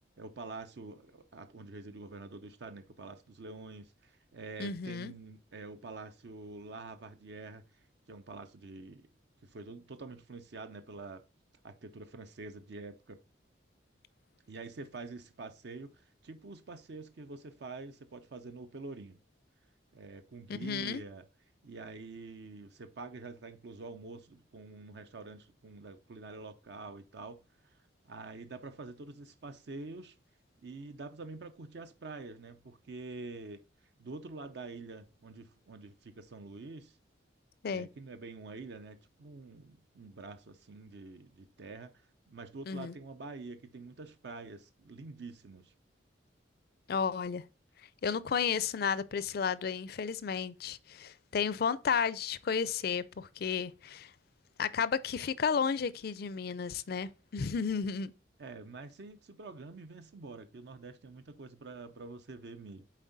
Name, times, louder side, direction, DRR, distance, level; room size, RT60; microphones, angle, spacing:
voice 1, 0.2-7.6 8.1-9.1 9.4-11.2 11.6-13.2 14.5-19.2 19.9-21.3 21.6-27.8 28.0-30.2 30.6-33.6 34.0-37.0 37.7-42.0 42.3-45.7 58.4-62.9, right 3 dB, 60° right, 0.5 m, -46 dB
voice 2, 4.6-5.1 20.5-21.0 37.6-37.9 42.7-42.9 46.9-47.4 48.0-54.1 54.6-58.1, left 6 dB, 55° left, 0.4 m, -33 dB
7.4 x 4.3 x 4.0 m
head